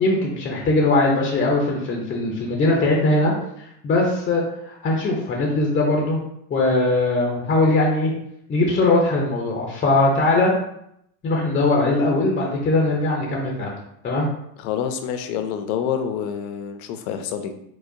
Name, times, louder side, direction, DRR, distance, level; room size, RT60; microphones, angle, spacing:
voice 1, 0.0-6.2 6.5-8.1 8.5-10.5 11.2-13.8 14.0-14.3, left 2 dB, 20° left, -1 dB, 0.4 m, -20 dB
voice 2, 14.6-17.5, left 8 dB, 70° left, 7 dB, 0.6 m, -27 dB
4.6 x 2.1 x 2.5 m, 0.75 s
supercardioid pair, 125°, 46 cm